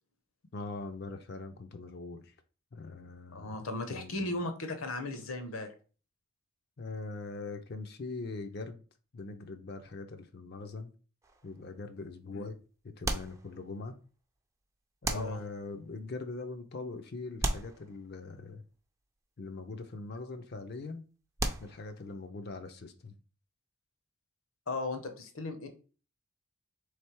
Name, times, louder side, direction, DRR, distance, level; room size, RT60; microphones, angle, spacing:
voice 1, 0.5-2.3 2.7-4.3 6.8-8.8 9.1-10.9 11.4-12.6 13.0-14.0 15.0-18.6 19.4-21.0 21.6-23.2, left 3 dB, 45° left, 0.5 m, -42 dB
voice 2, 3.3-5.7 12.3-12.5 15.1-15.4 24.7-25.7, left 2 dB, 70° left, 0.8 m, -36 dB
sound 1, 11.2-11.8 13.0-14.0 15.0-15.9 17.4-18.5 21.4-22.2, right 2 dB, 15° right, 0.4 m, -36 dB
3.6 x 3.3 x 4.5 m
head